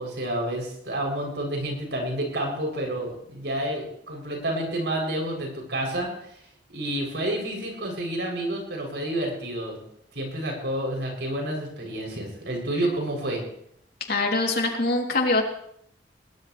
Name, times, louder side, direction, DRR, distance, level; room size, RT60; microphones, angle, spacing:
voice 1, 0.0-6.4 6.7-9.8 10.1-13.4, right 1 dB, 70° right, 0 dB, 7.8 m, -29 dB
voice 2, 14.1-15.4, left 2 dB, 60° left, 1 dB, 3.3 m, -23 dB
22.0 x 19.5 x 3.4 m, 0.70 s
head